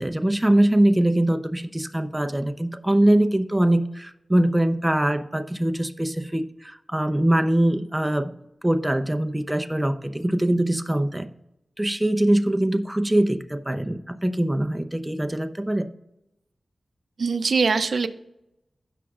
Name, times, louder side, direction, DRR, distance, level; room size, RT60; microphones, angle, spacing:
voice 1, 0.0-8.3 8.6-11.3 11.8-15.9, right 1 dB, 10° right, 8 dB, 0.7 m, -22 dB
voice 2, 17.2-18.1, right 4 dB, 75° right, 11 dB, 0.5 m, -22 dB
16.0 x 6.1 x 2.4 m, 0.88 s
wide cardioid pair, 60°, 0 cm